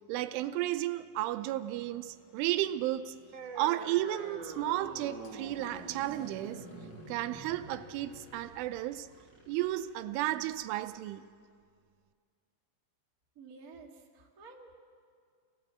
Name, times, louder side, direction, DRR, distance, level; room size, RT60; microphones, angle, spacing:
voice 1, 0.1-3.2 3.6-6.7 7.1-9.1 9.5-11.3, right 14 dB, 85° right, 3.2 m, -33 dB
Engine, 1.2-8.4, left 9 dB, 85° left, 3.7 m, -59 dB
Motorcycle / Engine, 1.6-10.8, equal, 5° right, 2.8 m, -62 dB
sound 1, 3.3-10.3, right 4 dB, 40° right, 1.6 m, -46 dB
voice 2, 13.3-14.7, right 4 dB, 70° right, 0.8 m, -52 dB
28.5 x 18.0 x 7.6 m
omnidirectional pair, 5.5 m